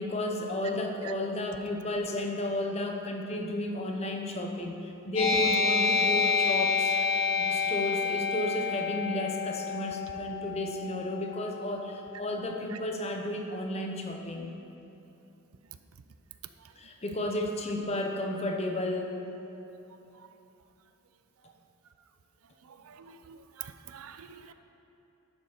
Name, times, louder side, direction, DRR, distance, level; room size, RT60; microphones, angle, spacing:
voice 1, 0.0-14.5 16.8-19.2, left 1 dB, 30° left, 2 dB, 0.8 m, -33 dB
sound 1, 5.2-12.2, left 5 dB, 80° left, 2.5 m, -29 dB
voice 2, 22.7-24.5, right 9 dB, 85° right, 9 dB, 0.5 m, -46 dB
10.5 x 7.0 x 4.9 m, 2.8 s
head